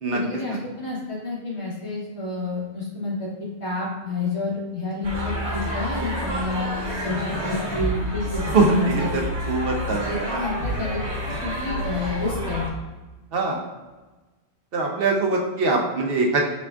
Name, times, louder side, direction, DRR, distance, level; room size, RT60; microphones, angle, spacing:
voice 1, 0.1-6.7 7.0-9.2 10.1-11.0 11.4-12.7, left 3 dB, 85° left, -6 dB, 1.7 m, -29 dB
sound 1, 5.0-12.7, equal, 90° right, 1.2 m, -28 dB
voice 2, 8.5-8.9 9.5-10.4 13.3-13.6 14.7-16.4, right 3 dB, 60° right, 0 dB, 0.9 m, -22 dB
5.0 x 3.6 x 2.3 m, 1.2 s
omnidirectional pair, 1.1 m